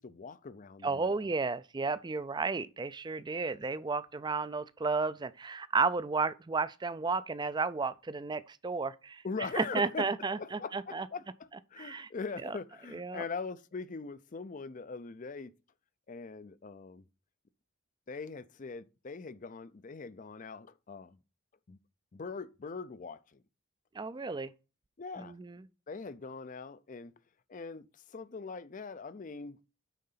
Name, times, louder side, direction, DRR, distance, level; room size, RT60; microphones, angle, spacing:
voice 1, 0.0-1.2 9.2-15.5 16.1-17.0 18.1-21.2 21.7-21.8 22.1-23.4 25.0-25.4 25.9-27.1 27.5-29.6, left 4 dB, 35° left, 0.5 m, -42 dB
voice 2, 0.8-9.2 9.5-11.1 11.8-12.1 12.4-12.6 12.9-13.2 23.9-24.5 25.2-25.6, right 4 dB, 20° right, 0.4 m, -33 dB
9.2 x 3.8 x 5.6 m
head